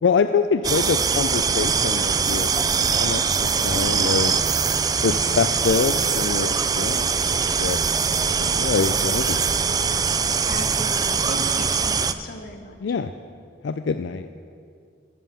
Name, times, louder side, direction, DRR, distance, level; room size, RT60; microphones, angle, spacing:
voice 1, 0.0-4.3 5.0-7.8 8.1-9.4 9.8-10.1 12.8-13.1 13.6-14.3, left 5 dB, 80° left, 9 dB, 0.4 m, -25 dB
sound 1, 0.6-12.1, right 6 dB, 20° right, 0.3 m, -22 dB
voice 2, 10.5-13.0, left 2 dB, 55° left, 5 dB, 1.1 m, -36 dB
12.5 x 7.5 x 6.9 m, 2.3 s
head